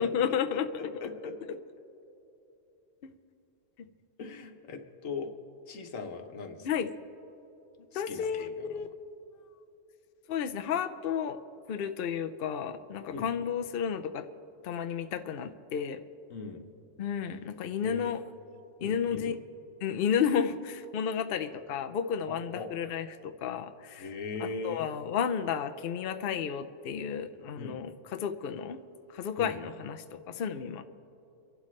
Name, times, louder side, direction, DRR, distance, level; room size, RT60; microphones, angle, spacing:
voice 1, 0.0-0.7 3.0-3.1 6.6-6.9 7.9-8.9 10.3-11.4 11.7-14.3 14.6-16.0 17.0-18.2 18.8-19.4 19.8-24.1 24.4-28.8 29.1-30.8, left 7 dB, 55° left, 8 dB, 0.7 m, -32 dB
voice 2, 0.5-1.3 4.2-5.3 5.7-6.7 7.9-8.8 13.1-13.3 16.3-16.7 17.8-18.1 18.8-19.3 22.3-22.7 24.0-24.9 27.6-27.8 29.4-29.5, left 4 dB, 80° left, 6 dB, 1.4 m, -40 dB
30.0 x 11.5 x 3.2 m, 2.9 s
omnidirectional pair, 1.3 m